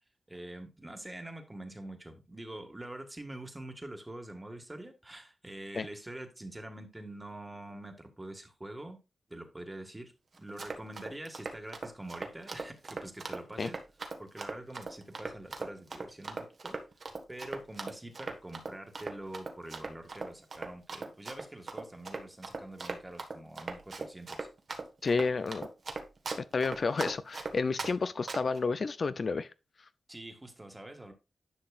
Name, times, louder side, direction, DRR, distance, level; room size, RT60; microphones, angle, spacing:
voice 1, 0.3-9.0 9.3-10.1 10.4-13.8 14.2-16.8 17.3-24.5 30.1-31.1, right 1 dB, 20° right, 1.6 m, -45 dB
Run, 10.4-27.9 28.3-28.6, right 3 dB, 55° right, 1.3 m, -39 dB
voice 2, 25.0-25.7 26.5-29.5, left 4 dB, 55° left, 0.4 m, -30 dB
10.5 x 5.9 x 2.4 m
cardioid pair, 75°, 0 cm